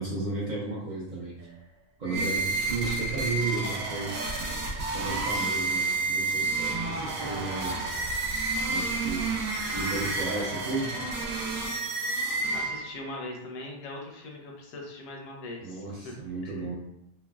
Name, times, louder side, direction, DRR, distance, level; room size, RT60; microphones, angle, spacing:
voice 1, 0.0-1.4 2.0-7.9 8.7-9.3 9.7-11.1 15.6-16.7, right 3 dB, 50° right, -7 dB, 0.5 m, -34 dB
sound 1, 2.0-13.1, right 3 dB, 85° right, 1.1 m, -30 dB
voice 2, 12.5-16.1 16.4-16.7, left 2 dB, 75° left, 0 dB, 1.0 m, -41 dB
3.1 x 2.2 x 2.2 m, 0.82 s
omnidirectional pair, 1.4 m